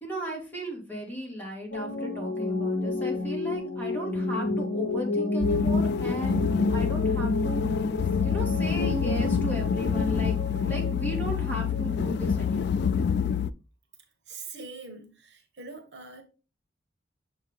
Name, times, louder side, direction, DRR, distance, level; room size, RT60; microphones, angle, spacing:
voice 1, 0.0-7.8 8.1-12.8, right 1 dB, 10° left, 2.0 m, -35 dB
sound 1, 1.7-13.0, left 2 dB, 80° left, 0.7 m, -31 dB
sound 2, 5.4-13.5, left 7 dB, 65° left, 0.3 m, -27 dB
voice 2, 14.3-16.2, right 4 dB, 70° right, 1.2 m, -43 dB
7.0 x 3.7 x 3.6 m
head